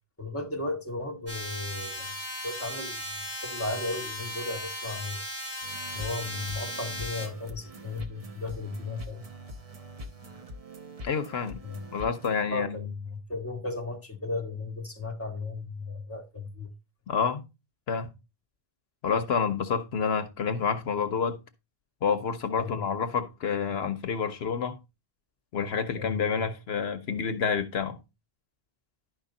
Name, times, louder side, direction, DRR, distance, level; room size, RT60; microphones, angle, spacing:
voice 1, 0.2-2.1 2.4-3.2 3.4-5.2 5.9-9.2 11.6-11.8 12.5-16.7 22.6-22.9 26.0-26.5, left 2 dB, 15° left, 1.6 m, -35 dB
sound 1, 1.3-7.3, left 1 dB, 80° right, 4.1 m, -37 dB
sound 2, 5.6-12.4, equal, 35° right, 1.0 m, -44 dB
voice 2, 11.0-11.6 11.9-12.8 17.1-17.4 17.9-18.1 19.0-21.4 22.0-24.8 25.5-28.0, left 6 dB, 75° left, 1.0 m, -28 dB
11.0 x 5.1 x 3.9 m
omnidirectional pair, 1.1 m